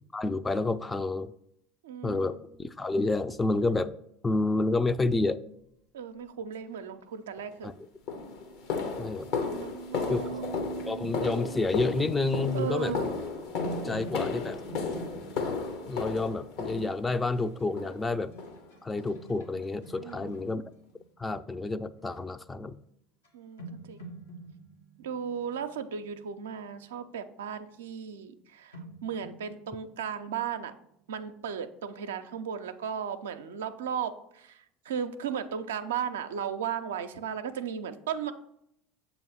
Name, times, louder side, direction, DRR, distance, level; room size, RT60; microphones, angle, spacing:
voice 1, 0.1-1.3 2.0-3.9 4.2-5.4 7.6-7.7 9.0-9.3 10.1-10.2 10.9-13.0 13.8-14.6 15.9-18.3 18.8-20.6 21.2-22.8, left 3 dB, 20° left, 12 dB, 0.4 m, -29 dB
voice 2, 1.8-2.4 5.9-7.7 9.6-10.5 12.5-13.1 13.8-14.1 20.0-20.5 23.3-24.1 25.0-30.7 31.1-38.3, right 7 dB, 80° right, 8 dB, 0.4 m, -36 dB
sound 1, 7.4-7.5 8.1-17.3 17.8-18.1 18.4-18.6 19.0-19.2 19.6-19.7 20.2-20.3, left 5 dB, 65° left, 1.0 m, -34 dB
sound 2, 8.5-12.9, right 7 dB, 50° left, 1.1 m, -41 dB
sound 3, 13.3-21.6 22.0-22.4 23.2-23.3 23.6-26.1 28.7-30.5, right 3 dB, 90° left, 1.2 m, -46 dB
7.0 x 2.9 x 5.6 m, 0.76 s
hypercardioid pair, 75°, 0 cm